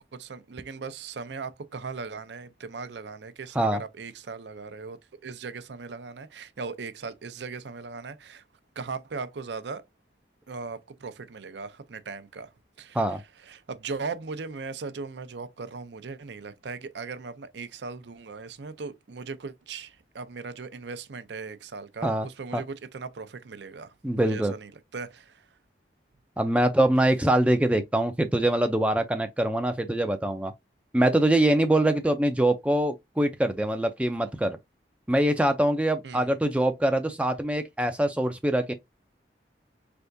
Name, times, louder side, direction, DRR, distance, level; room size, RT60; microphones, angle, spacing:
voice 1, 0.0-8.4 8.8-9.8 10.5-12.5 12.8-13.2 13.4-25.6 36.0-36.3, right 4 dB, 80° right, 0.5 m, -38 dB
voice 2, 24.0-24.5 26.4-30.5 30.9-34.6 35.1-38.7, right 1 dB, 5° right, 0.3 m, -24 dB
4.5 x 3.4 x 2.6 m
head